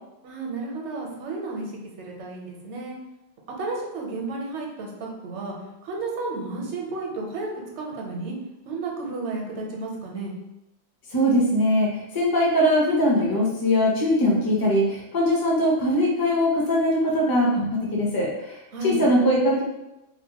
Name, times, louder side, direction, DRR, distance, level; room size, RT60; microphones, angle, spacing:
voice 1, 0.2-1.7 2.0-3.0 3.6-5.5 5.8-7.5 7.8-8.3 8.7-10.3 18.7-19.0, right 3 dB, 80° right, -1 dB, 0.9 m, -32 dB
voice 2, 11.1-19.6, equal, 30° left, -3 dB, 0.5 m, -21 dB
2.7 x 2.1 x 2.8 m, 0.93 s
omnidirectional pair, 1.2 m